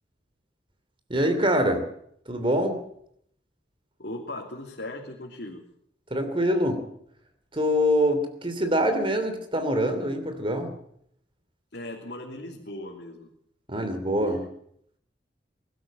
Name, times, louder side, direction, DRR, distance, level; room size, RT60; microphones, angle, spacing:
voice 1, 1.1-1.8 2.3-2.8 6.1-6.8 7.5-10.7 13.7-14.5, equal, 30° right, 8 dB, 3.1 m, -24 dB
voice 2, 4.0-5.7 11.7-13.3 13.8-13.9 14.3-14.4, left 1 dB, 70° left, -1 dB, 3.0 m, -38 dB
22.5 x 13.0 x 8.9 m, 0.71 s
head